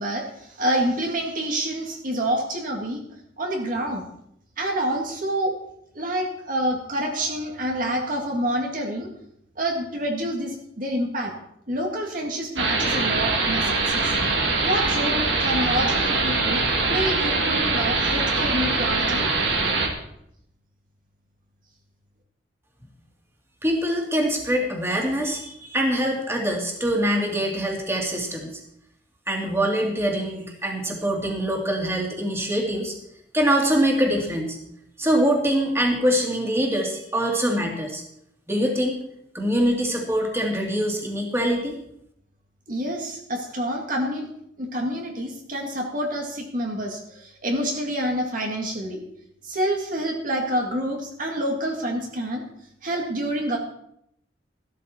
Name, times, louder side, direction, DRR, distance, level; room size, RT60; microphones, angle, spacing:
voice 1, 0.0-3.0 3.4-4.1 4.6-5.5 5.9-9.1 9.6-11.3 11.7-14.1 14.6-19.3 42.7-44.3 44.6-49.0 49.4-52.4 52.8-53.6, right 1 dB, 50° right, 1 dB, 2.0 m, -27 dB
sound 1, 12.6-19.9, right 3 dB, 90° right, 2.6 m, -23 dB
voice 2, 23.6-28.6 29.3-32.9 33.3-34.6 35.0-38.0 38.5-39.0 39.3-41.7, equal, 15° right, 1 dB, 2.5 m, -24 dB
15.0 x 12.5 x 4.3 m, 0.75 s
head